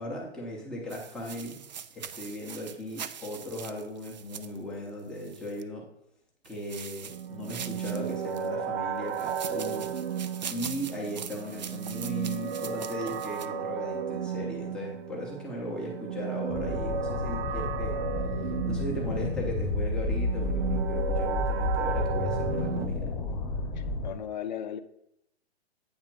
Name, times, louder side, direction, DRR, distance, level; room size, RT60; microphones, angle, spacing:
voice 1, 0.0-1.6 1.9-5.8 6.4-9.9 10.5-18.0 18.7-23.1, equal, ahead, -3 dB, 0.7 m, -37 dB
sound 1, 0.9-5.6 6.4-8.5 9.1-13.5, right 8 dB, 45° right, 0.4 m, -42 dB
sound 2, 7.1-22.9, right 7 dB, 70° right, 0.7 m, -34 dB
sound 3, 16.5-24.1, left 2 dB, 25° left, 1.1 m, -31 dB
voice 2, 23.7-24.8, left 9 dB, 45° left, 11 dB, 0.6 m, -36 dB
8.6 x 3.6 x 5.9 m, 0.77 s
hypercardioid pair, 165°, 33 cm